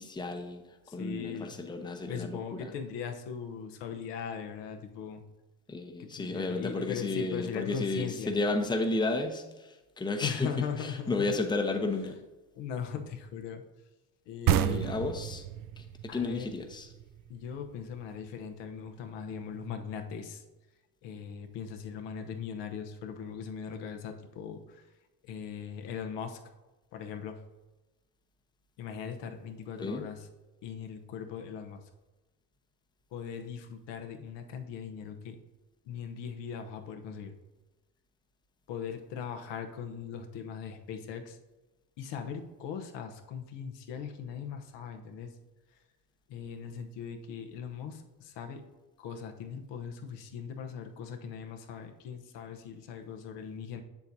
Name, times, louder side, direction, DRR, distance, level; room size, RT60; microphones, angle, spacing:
voice 1, 0.0-2.7 5.7-10.5 10.8-12.1 14.5-15.4 15.8-15.9 16.1-16.9 29.8-30.0, left 3 dB, 10° left, 5 dB, 0.7 m, -33 dB
voice 2, 0.9-1.5 2.1-5.2 6.0-8.3 10.2-11.3 12.5-13.6 14.3-15.1 16.1-16.5 17.3-20.4 21.0-24.9 25.2-26.4 26.9-27.4 28.8-30.2 30.6-31.8 33.1-35.4 35.8-37.3 38.7-41.4 42.0-45.4 46.3-48.6 49.0-53.8, left 7 dB, 75° left, 5 dB, 0.8 m, -39 dB
sound 1, 14.5-17.9, right 12 dB, 50° right, 0.5 m, -30 dB
7.0 x 6.9 x 2.6 m, 1.1 s
supercardioid pair, 90°, 43 cm